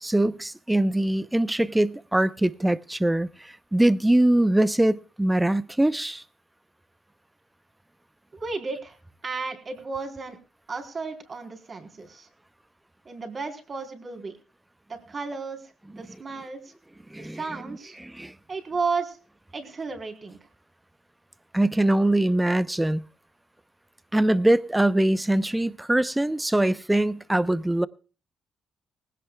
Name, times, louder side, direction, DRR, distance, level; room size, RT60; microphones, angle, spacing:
voice 1, 0.0-6.2 17.1-18.3 21.5-23.0 24.1-27.9, right 1 dB, 10° right, 0.7 m, -23 dB
voice 2, 8.3-9.0 9.2-10.4 10.7-12.3 13.1-14.4 14.9-16.7 17.2-18.0 18.5-19.2 19.5-20.4, right 4 dB, 40° right, 3.9 m, -33 dB
20.0 x 16.5 x 2.3 m
cardioid pair, 90°, 0 cm